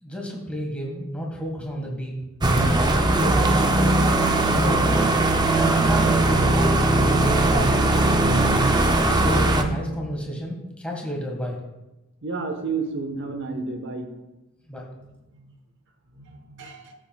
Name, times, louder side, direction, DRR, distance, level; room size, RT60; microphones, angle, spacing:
voice 1, 0.0-2.1 2.6-3.8 4.3-5.1 5.5-11.6 14.7-14.8, equal, 5° left, -1 dB, 1.6 m, -31 dB
sound 1, 2.4-9.6, right 2 dB, 20° right, 0.5 m, -19 dB
voice 2, 12.2-14.1 16.1-16.9, right 4 dB, 55° right, 5 dB, 1.1 m, -31 dB
13.5 x 7.6 x 2.3 m, 1.0 s
head